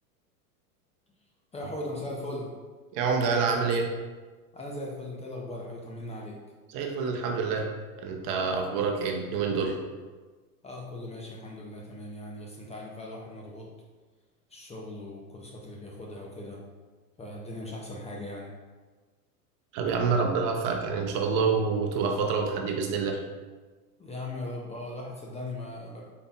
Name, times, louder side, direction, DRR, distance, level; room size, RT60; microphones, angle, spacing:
voice 1, 1.5-2.5 4.5-6.4 10.6-13.7 14.5-16.6 17.2-18.5 24.0-26.0, left 1 dB, 15° left, -2 dB, 0.6 m, -39 dB
voice 2, 2.9-3.9 6.7-7.7 8.0-9.8 19.7-23.2, right 5 dB, 45° right, 3 dB, 0.8 m, -27 dB
5.2 x 4.2 x 2.3 m, 1.3 s
hypercardioid pair, 100°, 46 cm